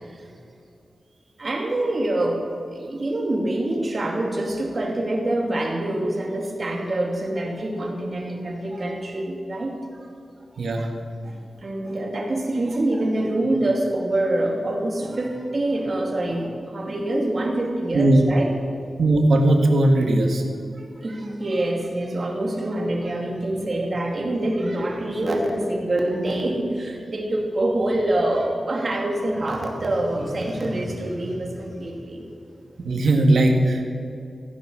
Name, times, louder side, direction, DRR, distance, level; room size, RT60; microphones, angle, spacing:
voice 1, 1.4-2.4 2.7-10.1 10.8-10.9 11.2-18.5 20.7-32.2, right 1 dB, 40° right, 1 dB, 2.5 m, -25 dB
voice 2, 10.6-10.9 17.9-18.2 19.0-20.4 32.8-33.8, right 1 dB, 75° right, 3 dB, 1.9 m, -18 dB
15.5 x 10.0 x 6.4 m, 2.5 s
wide cardioid pair, 115°, 0 cm